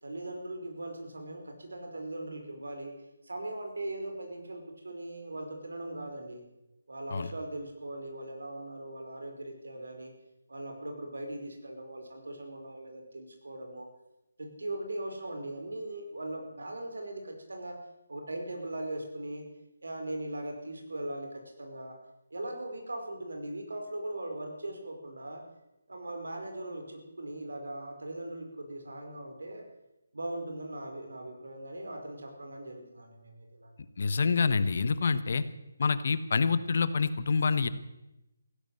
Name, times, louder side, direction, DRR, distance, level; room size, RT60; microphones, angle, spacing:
voice 1, 0.0-2.9 3.2-6.4 6.9-10.1 10.5-13.9 14.4-17.8 18.1-19.5 19.8-22.0 22.3-25.4 25.9-29.7 30.1-33.7, right 1 dB, 85° right, 3 dB, 4.8 m, -39 dB
voice 2, 34.0-35.4 35.8-37.7, left 4 dB, 55° left, 13 dB, 1.2 m, -27 dB
15.5 x 12.0 x 7.8 m, 0.93 s
hypercardioid pair, 165°, 0 cm